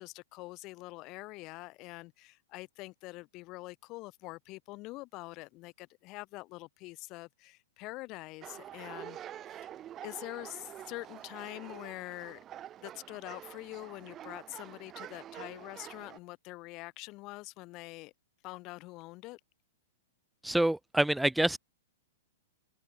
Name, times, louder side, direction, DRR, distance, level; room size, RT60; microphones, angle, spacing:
voice 1, 0.0-9.2 9.5-9.7 10.0-12.4 12.8-18.1 18.4-19.4, left 22 dB, 40° left, 3.1 m, -45 dB
sound 1, 8.4-16.2, right 11 dB, 30° right, 4.2 m, -47 dB
voice 2, 20.4-21.6, right 1 dB, 5° right, 2.1 m, -27 dB
open air
hypercardioid pair, 120°, 0 cm